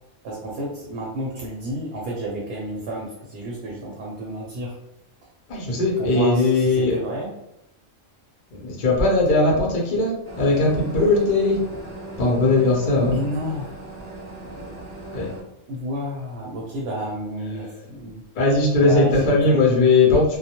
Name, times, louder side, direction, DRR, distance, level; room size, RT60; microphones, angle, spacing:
voice 1, 0.2-4.8 6.0-7.3 12.9-13.8 15.7-18.2 18.8-19.7, right 1 dB, 65° right, -3 dB, 0.8 m, -30 dB
voice 2, 5.5-6.9 8.6-11.6 12.2-13.2 15.1-15.3 17.5-17.7 18.3-20.4, left 3 dB, 50° left, -2 dB, 0.6 m, -19 dB
sound 1, 10.2-15.4, right 2 dB, 10° left, 0.7 m, -38 dB
2.2 x 2.1 x 2.8 m, 0.82 s
omnidirectional pair, 1.3 m